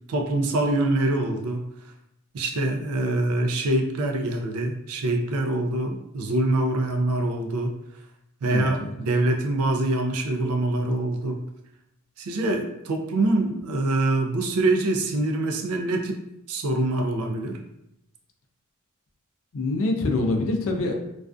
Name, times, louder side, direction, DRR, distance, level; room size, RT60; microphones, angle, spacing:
voice 1, 0.1-1.6 2.3-7.7 8.4-11.4 12.2-16.2 16.5-17.6, right 2 dB, 70° right, 3 dB, 0.4 m, -24 dB
voice 2, 8.5-8.9 19.5-20.9, left 2 dB, 60° left, 3 dB, 0.4 m, -25 dB
2.4 x 2.4 x 2.2 m, 0.83 s
head